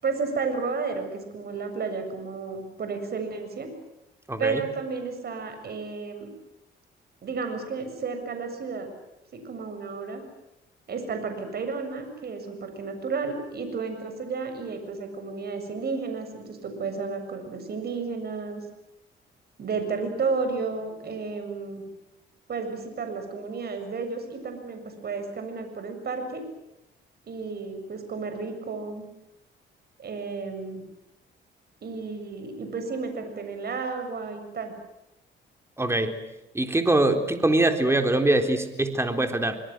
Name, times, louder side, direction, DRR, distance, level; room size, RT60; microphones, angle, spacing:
voice 1, 0.0-3.7 4.4-6.3 7.2-8.9 9.3-10.2 10.9-18.6 19.6-21.8 22.5-26.4 27.2-29.1 30.0-30.8 31.8-34.7, right 4 dB, 55° right, 7 dB, 7.2 m, -32 dB
voice 2, 4.3-4.6 35.8-36.1 36.5-39.6, right 2 dB, 15° right, 6 dB, 3.8 m, -23 dB
25.0 x 25.0 x 7.9 m, 0.91 s
cardioid pair, 90°, 20 cm